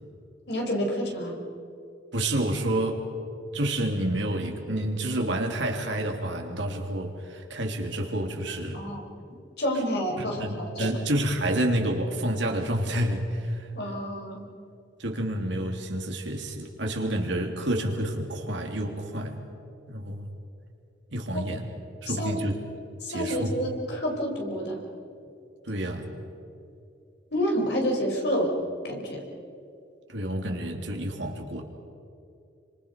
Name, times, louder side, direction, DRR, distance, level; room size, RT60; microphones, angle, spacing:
voice 1, 0.5-1.4 8.7-9.1 9.6-10.9 13.8-14.5 21.3-21.4 22.2-22.3 23.0-24.8 27.3-28.6 28.8-29.2, equal, 60° left, 0 dB, 5.3 m, -28 dB
voice 2, 2.1-3.1 3.5-8.8 10.2-13.7 15.0-19.4 19.9-20.3 21.1-21.7 22.0-22.5 23.1-23.5 25.6-26.1 30.1-31.6, right 1 dB, 75° right, 2 dB, 3.2 m, -29 dB
28.5 x 26.0 x 5.4 m, 2.7 s
head